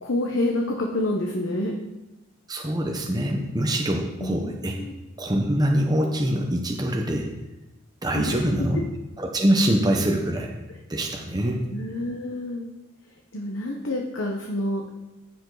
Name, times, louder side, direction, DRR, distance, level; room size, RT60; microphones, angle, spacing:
voice 1, 0.0-1.8 4.2-4.9 8.1-8.4 11.7-12.7 13.3-14.9, left 1 dB, 70° left, 0 dB, 1.0 m, -28 dB
voice 2, 2.5-4.8 5.2-7.3 8.0-8.8 9.2-10.5 10.9-11.6, right 1 dB, 20° right, 1 dB, 0.9 m, -24 dB
15.0 x 5.2 x 4.0 m, 1.0 s
head